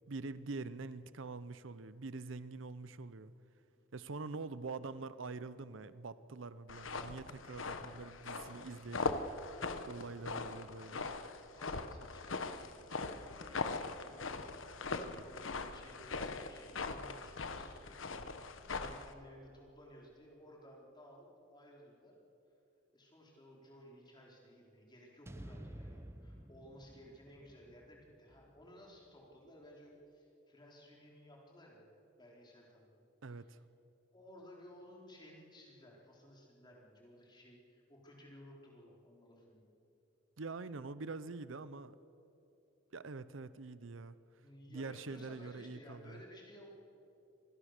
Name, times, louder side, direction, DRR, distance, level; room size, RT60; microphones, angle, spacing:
voice 1, 0.1-3.3 3.9-9.2 9.9-11.1 33.2-33.6 40.4-42.0 42.9-44.2 44.7-46.2, right 3 dB, 75° right, 15 dB, 0.7 m, -45 dB
sound 1, 6.7-19.1, left 3 dB, 75° left, 1.2 m, -41 dB
voice 2, 11.6-22.1 22.9-33.5 34.1-39.6 44.4-46.7, equal, 20° left, -1 dB, 4.2 m, -57 dB
sound 2, 25.3-29.5, right 1 dB, 15° right, 0.7 m, -52 dB
25.5 x 20.0 x 6.7 m, 2.9 s
head